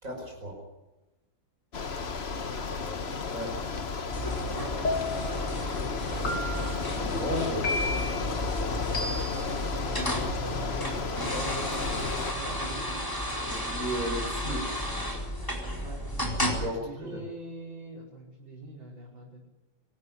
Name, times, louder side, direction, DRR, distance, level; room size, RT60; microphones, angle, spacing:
voice 1, 0.0-0.6 3.3-3.6 6.1-6.4 7.0-8.1 11.1-12.1 12.4-12.5 13.4-14.7 16.4-17.2, equal, 40° right, 2 dB, 5.5 m, -35 dB
Bicycle, 1.7-12.3, left 4 dB, 35° left, 1.3 m, -33 dB
voice 2, 2.5-3.0 5.1-5.7 9.3-10.8 12.2-13.1 15.8-16.0 16.5-19.4, right 2 dB, 85° right, -4 dB, 6.1 m, -45 dB
sound 1, 4.1-16.6, equal, 10° left, 4.3 m, -33 dB
sound 2, 4.8-5.4 6.2-6.8 7.6-8.2 8.9-9.5, left 2 dB, 65° left, 4.1 m, -32 dB
25.5 x 13.5 x 9.8 m, 1.1 s
omnidirectional pair, 2.1 m